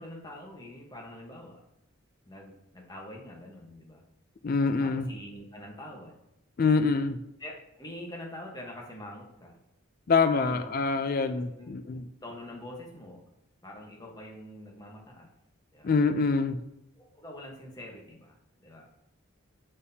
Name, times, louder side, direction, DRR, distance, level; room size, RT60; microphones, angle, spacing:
voice 1, 0.0-1.6 2.3-4.0 4.8-6.2 7.4-9.5 10.3-10.7 11.5-11.8 12.2-13.2 13.6-15.3 15.7-16.0 16.9-18.9, left 1 dB, 20° left, -1 dB, 1.1 m, -45 dB
voice 2, 4.4-5.1 6.6-7.2 10.1-12.0 15.8-16.6, left 4 dB, 45° left, 9 dB, 0.4 m, -25 dB
6.3 x 5.4 x 2.7 m, 0.82 s
head